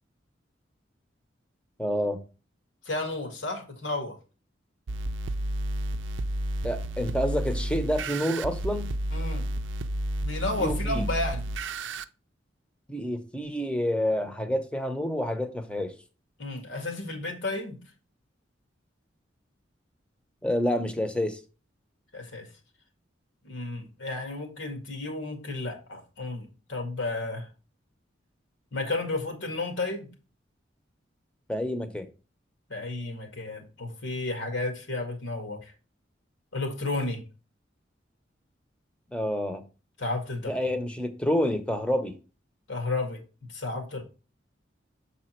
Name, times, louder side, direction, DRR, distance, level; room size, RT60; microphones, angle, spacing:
voice 1, 1.8-2.2 6.6-8.9 10.6-11.1 12.9-16.0 20.4-21.4 31.5-32.1 39.1-39.6 40.4-42.1, equal, 5° left, 0.8 m, -28 dB
voice 2, 2.9-4.2 9.1-9.4 10.2-11.4 16.4-17.8 22.1-22.5 23.4-27.5 28.7-30.1 32.7-35.7 36.5-37.2 40.0-40.5 42.7-43.2 43.5-44.0, left 2 dB, 80° left, 2.0 m, -32 dB
sound 1, 4.9-12.0, right 1 dB, 75° right, 0.5 m, -31 dB
7.2 x 4.2 x 4.4 m
head